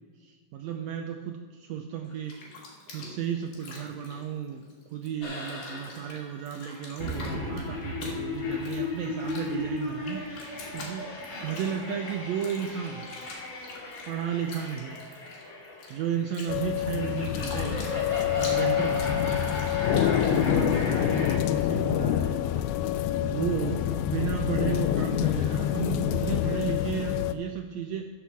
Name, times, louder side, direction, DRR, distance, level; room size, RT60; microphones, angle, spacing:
voice 1, 0.2-2.5 2.9-11.1 11.4-13.1 14.1-15.0 15.9-22.4 23.2-28.0, right 8 dB, 90° right, 4 dB, 1.5 m, -34 dB
Bathtub (filling or washing), 2.0-5.1 5.4-21.3, left 3 dB, 70° left, 3.4 m, -45 dB
sound 1, 5.2-21.4, left 2 dB, 40° left, 2.2 m, -36 dB
sound 2, 16.5-27.3, left 11 dB, 85° left, 1.7 m, -26 dB
12.5 x 6.4 x 6.9 m, 1.5 s
omnidirectional pair, 3.9 m